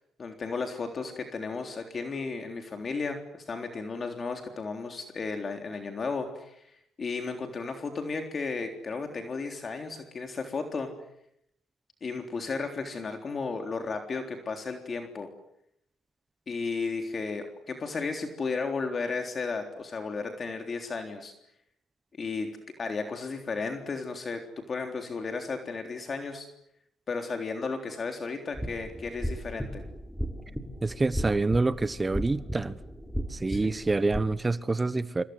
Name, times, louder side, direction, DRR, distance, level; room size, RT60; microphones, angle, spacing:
voice 1, 0.2-10.9 12.0-15.3 16.5-21.3 22.2-22.5 22.8-26.5 27.1-29.8 33.5-33.7, left 4 dB, 40° left, 3.6 m, -34 dB
sound 1, 28.5-34.2, equal, 5° left, 3.5 m, -36 dB
voice 2, 30.8-32.8 33.3-35.2, right 3 dB, 20° right, 1.3 m, -27 dB
27.5 x 26.0 x 8.0 m
cardioid pair, 90°, 0 cm